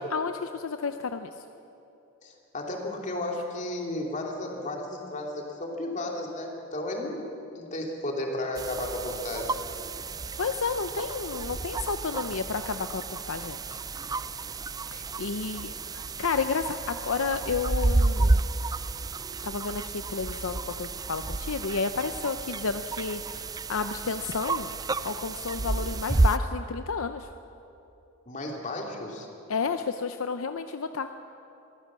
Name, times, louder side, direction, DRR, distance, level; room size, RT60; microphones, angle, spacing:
voice 1, 0.1-1.4 10.4-13.8 14.9-18.4 19.4-24.7 25.0-27.3 29.5-31.1, left 5 dB, 70° left, 8 dB, 0.6 m, -31 dB
voice 2, 2.2-7.2 7.5-9.5 28.3-29.3, left 1 dB, 35° left, 0 dB, 3.0 m, -33 dB
sound 1, 8.6-26.4, right 2 dB, 20° right, 0.4 m, -31 dB
23.0 x 16.0 x 7.5 m, 2.9 s
head